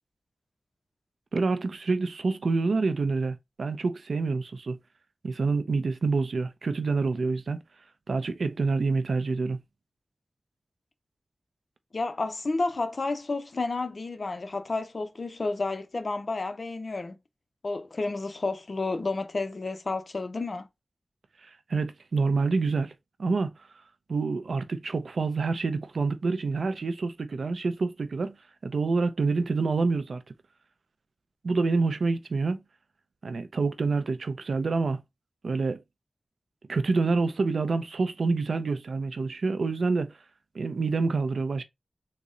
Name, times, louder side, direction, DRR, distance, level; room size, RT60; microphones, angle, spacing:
voice 1, 1.3-4.8 5.2-7.6 8.1-9.6 21.4-22.9 23.2-23.5 24.1-28.4 28.6-30.2 31.4-32.6 33.2-35.0 35.4-35.8 36.7-40.2 40.5-41.6, right 4 dB, 90° right, 0.4 m, -27 dB
voice 2, 11.9-17.2 17.6-20.7, left 3 dB, 55° left, 0.6 m, -31 dB
3.9 x 2.1 x 3.6 m
wide cardioid pair, 95°, 0 cm